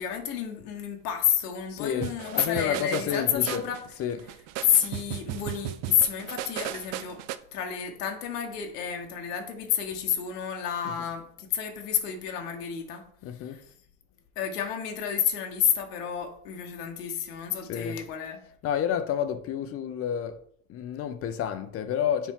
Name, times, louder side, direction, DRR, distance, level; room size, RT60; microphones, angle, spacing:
voice 1, 0.0-3.8 4.6-7.2 7.5-13.0 13.4-13.6 14.3-18.4, left 9 dB, 85° left, 1.3 m, -29 dB
voice 2, 1.7-3.6 4.0-4.2 13.2-13.6 17.6-18.0 18.6-20.4 20.7-22.3, left 9 dB, 30° left, 0.6 m, -30 dB
sound 1, 2.0-7.4, right 14 dB, 45° right, 0.4 m, -36 dB
7.2 x 4.3 x 3.6 m
supercardioid pair, 130°, 46 cm